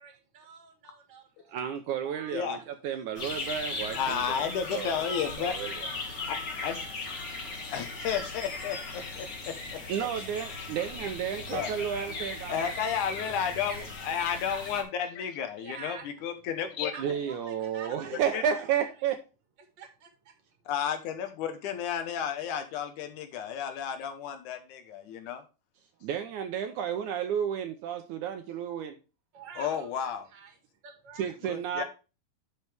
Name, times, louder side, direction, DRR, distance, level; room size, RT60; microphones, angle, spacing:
voice 1, 0.0-1.7 2.0-2.3 2.6-2.7 4.8-5.5 6.0-6.2 6.6-7.8 15.6-16.1 16.9-18.2 18.8-18.9 19.6-20.3 29.3-30.6 30.8-31.3, right 6 dB, 40° right, 4 dB, 2.1 m, -48 dB
voice 2, 1.5-5.0 5.4-5.9 9.9-12.6 17.0-19.2 26.0-28.9 31.2-31.8, right 8 dB, 70° right, 7 dB, 2.0 m, -32 dB
voice 3, 2.3-2.6 4.0-5.5 6.3-6.8 7.7-9.8 11.5-11.7 12.5-16.9 18.3-18.4 20.7-25.4 29.6-30.3 31.5-31.8, left 8 dB, 65° left, 7 dB, 2.4 m, -32 dB
sound 1, 3.1-14.8, left 3 dB, 35° left, 2.0 m, -38 dB
11.0 x 5.5 x 3.4 m, 0.31 s
omnidirectional pair, 4.0 m